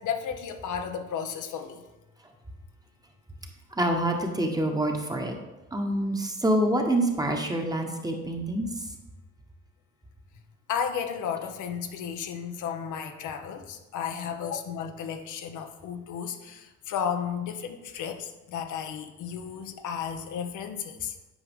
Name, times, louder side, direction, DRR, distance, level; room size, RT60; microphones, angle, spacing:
voice 1, 0.0-1.8 10.7-21.2, left 7 dB, 80° left, 6 dB, 0.8 m, -33 dB
voice 2, 3.7-5.4 5.7-8.9, right 1 dB, 10° right, 3 dB, 1.0 m, -26 dB
8.7 x 4.9 x 3.6 m, 1.1 s
cardioid pair, 90°, 30 cm